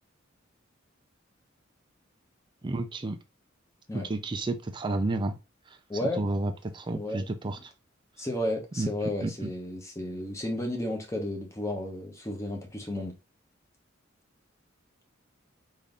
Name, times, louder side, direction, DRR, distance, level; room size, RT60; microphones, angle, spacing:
voice 1, 2.6-3.2 3.9-5.4 5.7-5.8 6.2-7.7 8.8-8.9 9.2-9.5, right 2 dB, 25° right, 0.4 m, -31 dB
voice 2, 5.9-6.3 6.9-7.2 8.2-13.2, left 1 dB, 15° left, 0.8 m, -33 dB
3.8 x 2.6 x 3.3 m
head